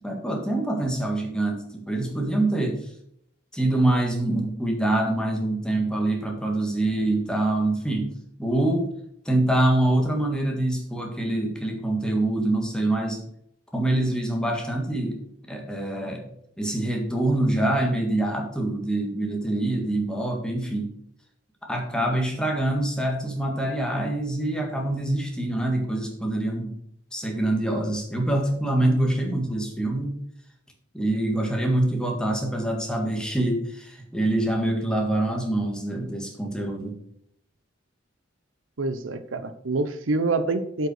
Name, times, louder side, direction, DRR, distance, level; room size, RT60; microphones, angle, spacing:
voice 1, 0.0-2.8 3.5-8.1 8.4-8.9 9.3-13.2 13.7-15.2 15.5-16.2 16.6-20.9 21.7-26.7 27.1-30.2 30.9-37.0, right 1 dB, 5° left, 1 dB, 1.8 m, -25 dB
voice 2, 38.8-40.9, right 3 dB, 85° right, 11 dB, 0.7 m, -26 dB
7.8 x 5.5 x 6.4 m, 0.70 s
head